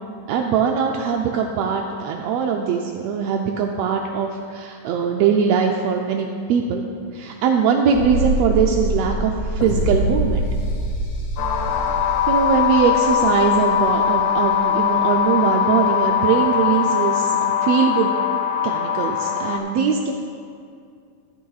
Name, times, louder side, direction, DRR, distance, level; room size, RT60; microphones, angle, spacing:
voice 1, 0.3-6.8 7.1-10.5 12.3-18.1 18.6-20.1, right 6 dB, 80° right, 2 dB, 1.5 m, -21 dB
sound 1, 7.9-14.8 15.1-15.2, right 1 dB, 50° left, 1.2 m, -25 dB
sound 2, 11.4-19.6, left 9 dB, 85° left, 2.1 m, -21 dB
14.0 x 12.0 x 2.4 m, 2.3 s
omnidirectional pair, 3.4 m